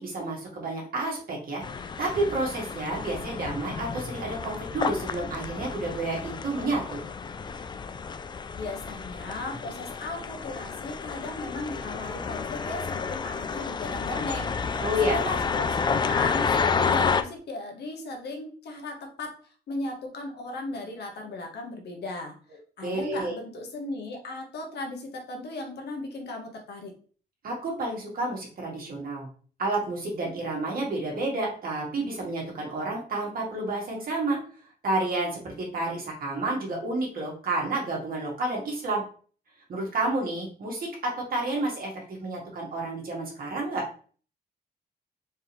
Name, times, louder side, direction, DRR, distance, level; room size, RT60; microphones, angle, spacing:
voice 1, 0.0-1.6 2.0-7.0 14.8-15.2 22.8-23.4 27.4-29.3 29.6-34.4 34.8-39.0 39.7-43.8, right 2 dB, 55° right, -2 dB, 2.0 m, -30 dB
sound 1, 1.6-17.2, left 5 dB, 25° left, 0.3 m, -30 dB
voice 2, 8.5-14.8 15.1-19.3 19.7-22.4 22.8-26.9, left 2 dB, 70° left, 2 dB, 1.3 m, -36 dB
4.5 x 3.6 x 3.1 m, 0.42 s
cardioid pair, 120°, 17 cm